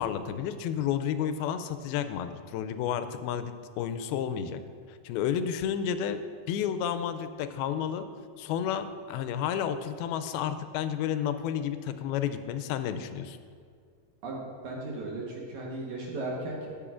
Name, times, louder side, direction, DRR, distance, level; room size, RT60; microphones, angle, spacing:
voice 1, 0.0-4.6 4.9-6.2 6.5-8.1 8.4-13.4, left 9 dB, 90° left, 10 dB, 2.4 m, -31 dB
voice 2, 14.2-16.7, right 2 dB, 65° right, -3 dB, 2.3 m, -36 dB
14.0 x 8.4 x 2.5 m, 2.1 s
omnidirectional pair, 4.3 m